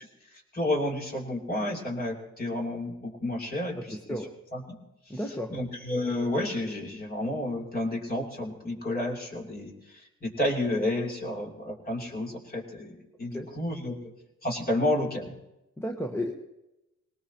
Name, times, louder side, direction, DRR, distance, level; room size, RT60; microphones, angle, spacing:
voice 1, 0.0-4.0 4.5-4.8 5.5-13.9 14.4-15.3, left 1 dB, 30° left, 0 dB, 3.2 m, -31 dB
voice 2, 3.7-4.3 5.1-5.5 13.3-13.5 15.8-16.3, equal, 10° left, 2 dB, 1.2 m, -33 dB
20.0 x 18.5 x 3.0 m, 0.93 s
cardioid pair, 90°, 30 cm